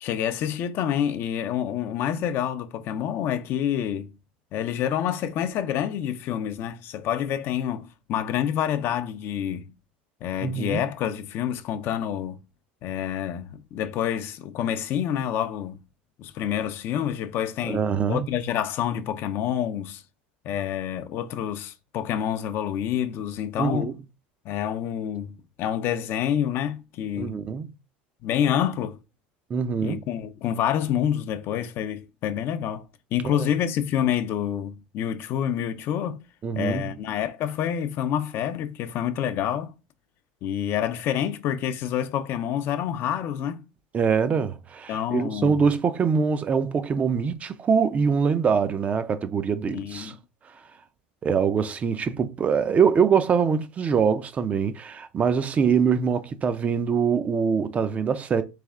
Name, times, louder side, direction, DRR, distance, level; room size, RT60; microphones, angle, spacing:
voice 1, 0.0-4.1 4.5-9.7 10.2-12.4 12.8-15.8 16.2-17.8 18.1-20.0 20.4-23.9 24.4-27.4 28.2-29.0 29.8-32.8 33.1-36.2 36.5-39.7 40.4-43.6 44.9-45.7 49.7-50.2, left 10 dB, 50° left, 0.5 m, -27 dB
voice 2, 10.4-10.8 17.7-18.3 23.6-23.9 27.2-27.7 29.5-30.0 33.4-33.5 36.4-37.0 43.9-50.1 51.2-58.4, right 6 dB, 30° right, 0.4 m, -24 dB
3.4 x 3.3 x 3.6 m
supercardioid pair, 110°, 5 cm